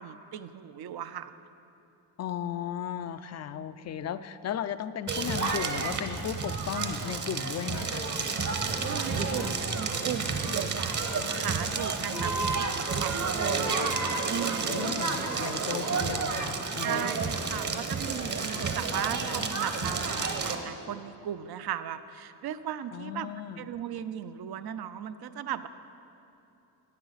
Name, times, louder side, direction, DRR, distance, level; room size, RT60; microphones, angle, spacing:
voice 1, 0.0-1.3 8.6-12.7 13.0-13.9 14.3-14.9 16.8-23.3 23.6-25.7, right 10 dB, 55° right, 13 dB, 0.6 m, -37 dB
voice 2, 2.2-8.1 12.5-12.6 14.7-17.1 22.9-23.7, left 9 dB, 40° left, 13 dB, 0.4 m, -35 dB
Crackle, 5.1-20.6, right 4 dB, 40° right, 1.0 m, -30 dB
11.5 x 8.9 x 4.1 m, 2.9 s
supercardioid pair, 55°, 45 cm